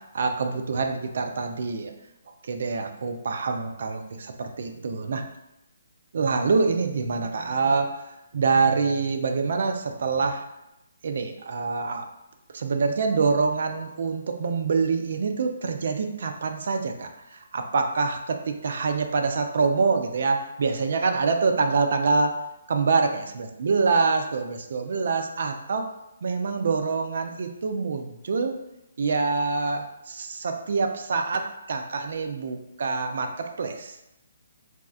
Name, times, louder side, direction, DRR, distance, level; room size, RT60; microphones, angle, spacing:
voice 1, 0.1-1.9 2.4-5.2 6.1-10.4 11.0-12.1 12.5-22.4 22.7-23.1 23.4-25.9 26.2-28.6 29.0-34.0, right 4 dB, 60° right, 5 dB, 0.4 m, -25 dB
4.2 x 2.3 x 2.3 m, 0.88 s
figure-of-eight pair, 140°, 0 cm